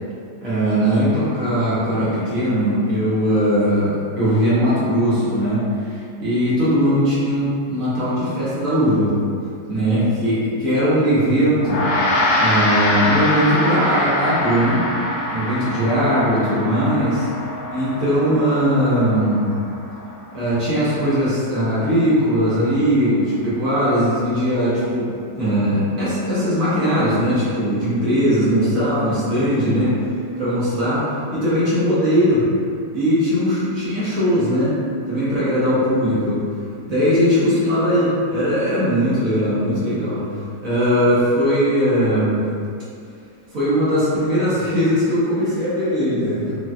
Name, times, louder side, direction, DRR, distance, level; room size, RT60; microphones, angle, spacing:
voice 1, 0.4-9.1 9.7-11.9 12.4-14.8 15.3-17.3 17.7-19.5 20.3-25.1 25.4-29.9 30.4-31.1 31.3-32.5 32.9-34.7 35.1-36.4 36.9-40.2 40.6-42.4 43.5-46.5, equal, 55° right, -11 dB, 1.1 m, -19 dB
Gong, 11.6-21.2, left 1 dB, 75° left, 0.8 m, -24 dB
4.1 x 2.2 x 2.2 m, 2.4 s
omnidirectional pair, 2.0 m